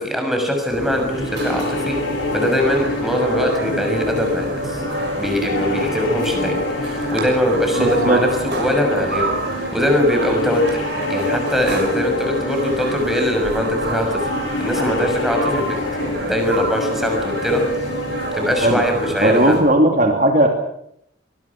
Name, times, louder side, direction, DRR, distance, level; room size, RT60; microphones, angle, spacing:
voice 1, 0.0-2.0 2.3-4.8 5.2-10.7 11.1-14.3 14.6-15.8 16.1-17.7 18.3-19.5, left 1 dB, ahead, 3 dB, 6.3 m, -21 dB
sound 1, 0.7-19.6, right 2 dB, 60° right, 6.6 m, -27 dB
sound 2, 1.0-18.7, left 2 dB, 90° left, 4.7 m, -28 dB
voice 2, 7.8-8.2 18.6-18.8 19.2-20.5, right 1 dB, 45° right, 3 dB, 2.8 m, -16 dB
24.0 x 22.5 x 6.1 m, 0.72 s
head